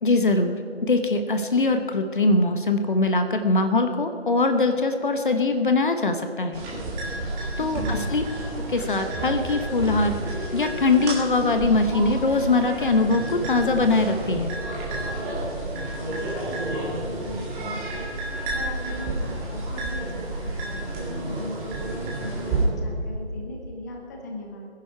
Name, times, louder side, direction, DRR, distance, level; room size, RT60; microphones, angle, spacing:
voice 1, 0.0-6.6 7.6-8.3 8.7-14.6, left 3 dB, 45° left, 7 dB, 1.1 m, -22 dB
sound 1, 6.5-22.6, right 2 dB, 10° right, 2.1 m, -30 dB
voice 2, 7.6-8.1 15.9-18.1 18.5-24.7, left 1 dB, 15° left, 1 dB, 1.1 m, -38 dB
20.5 x 11.0 x 4.6 m, 2.7 s
figure-of-eight pair, 160°, 35 cm